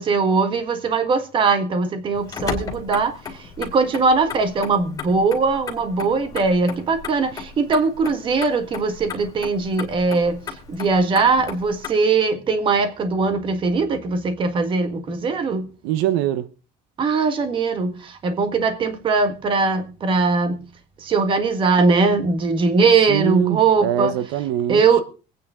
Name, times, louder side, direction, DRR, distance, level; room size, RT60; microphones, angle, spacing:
voice 1, 0.0-10.4 10.7-15.7 17.0-20.6 21.0-24.1 24.7-25.0, right 4 dB, 25° right, 1.7 m, -20 dB
Motor vehicle (road), 2.1-11.9, left 6 dB, 20° left, 2.5 m, -35 dB
voice 2, 15.8-16.5 23.1-24.8, right 12 dB, 75° right, 1.0 m, -23 dB
25.0 x 9.2 x 3.7 m
cardioid pair, 175°, 19 cm